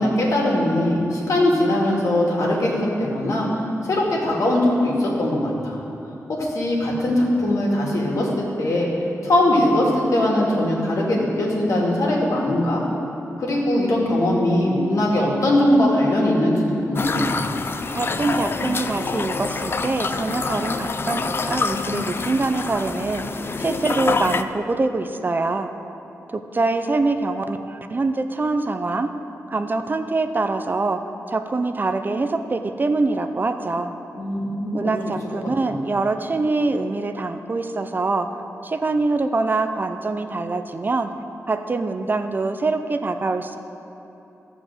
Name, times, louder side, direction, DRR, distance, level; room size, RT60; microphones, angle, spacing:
voice 1, 0.0-3.5 3.8-5.8 6.3-8.9 9.2-12.8 13.4-17.3 34.2-34.9 35.7-35.8, left 1 dB, 70° left, -3 dB, 2.4 m, -20 dB
sound 1, 17.0-24.4, left 4 dB, 40° left, 0.4 m, -26 dB
voice 2, 17.9-25.7 26.3-29.1 29.5-31.0 31.3-33.9 34.7-38.3 38.6-41.1 41.5-43.6, right 3 dB, 35° right, 8 dB, 0.5 m, -24 dB
13.5 x 5.0 x 7.7 m, 3.0 s
wide cardioid pair, 100°, 6 cm